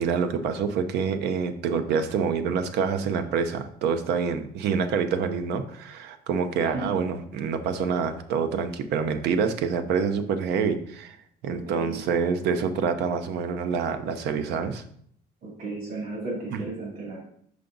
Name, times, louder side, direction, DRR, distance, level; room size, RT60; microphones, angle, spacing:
voice 1, 0.0-11.2 11.4-14.8, right 6 dB, 80° right, 9 dB, 0.7 m, -26 dB
voice 2, 11.5-12.0 15.4-17.2, right 2 dB, 65° right, -5 dB, 2.6 m, -34 dB
5.8 x 5.1 x 3.9 m, 0.65 s
cardioid pair, 110°, 17 cm